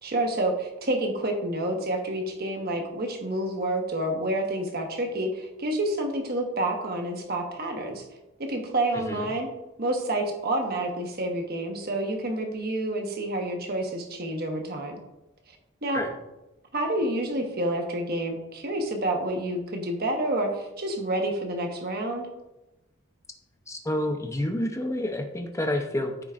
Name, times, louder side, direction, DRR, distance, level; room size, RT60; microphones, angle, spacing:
voice 1, 0.0-8.1 8.4-9.5 9.8-15.0 15.8-16.0 16.7-22.3, right 1 dB, 45° right, 3 dB, 1.1 m, -28 dB
voice 2, 8.9-9.3 15.9-16.1 23.7-26.1, left 1 dB, 15° left, 4 dB, 0.7 m, -29 dB
13.5 x 4.6 x 2.5 m, 0.97 s
head